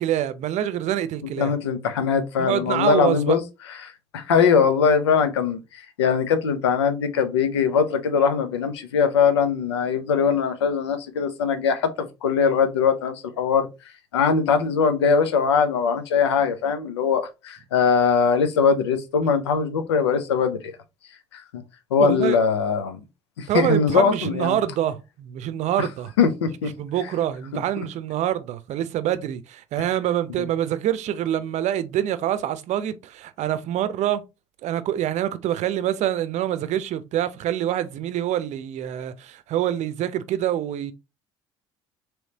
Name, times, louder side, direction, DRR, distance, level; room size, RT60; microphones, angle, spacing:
voice 1, 0.0-1.5 2.4-3.4 22.0-22.4 23.5-26.1 26.8-34.2 34.6-40.9, right 11 dB, 60° right, 0.6 m, -26 dB
voice 2, 1.2-3.4 3.7-13.7 14.1-20.7 21.3-21.6 21.9-23.0 23.4-24.6 25.8-25.9 26.2-26.7 27.8-27.9 30.4-30.5, left 6 dB, 90° left, 0.6 m, -21 dB
3.2 x 3.1 x 4.0 m
hypercardioid pair, 60°, 14 cm